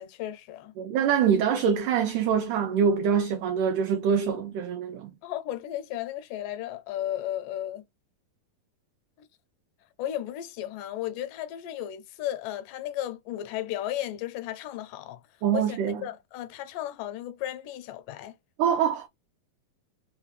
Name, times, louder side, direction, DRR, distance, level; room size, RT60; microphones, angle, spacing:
voice 1, 0.0-0.7 5.2-7.8 9.2-9.3 10.0-15.2 15.5-18.4, left 12 dB, 80° left, 2.1 m, -34 dB
voice 2, 0.8-5.1 15.4-16.0 18.6-19.1, right 7 dB, 80° right, 1.8 m, -24 dB
5.6 x 2.2 x 3.1 m
omnidirectional pair, 4.1 m